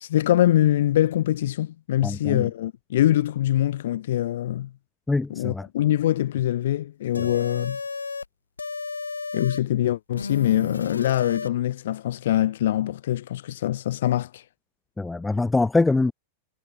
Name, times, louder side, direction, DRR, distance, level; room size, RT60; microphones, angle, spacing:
voice 1, 0.0-4.7 5.3-7.8 9.3-14.4, left 13 dB, 60° left, 0.7 m, -23 dB
voice 2, 2.0-2.5 5.1-5.7 15.0-16.1, left 3 dB, 10° left, 0.6 m, -23 dB
sound 1, 7.1-8.3 8.6-9.6 10.2-11.5, left 4 dB, 75° left, 1.0 m, -32 dB
figure-of-eight pair, 90°, 0 cm